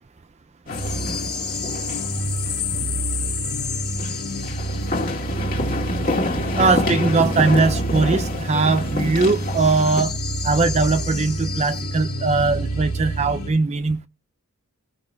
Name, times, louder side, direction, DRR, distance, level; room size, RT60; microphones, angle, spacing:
sound 1, 0.7-13.5, equal, 85° left, 2.5 m, -27 dB
sound 2, 0.7-2.2 2.5-2.6 4.0-10.0, left 2 dB, 40° left, 2.0 m, -27 dB
voice 1, 6.6-10.2 10.4-14.1, right 3 dB, 30° right, 0.5 m, -20 dB
17.0 x 5.7 x 3.2 m
head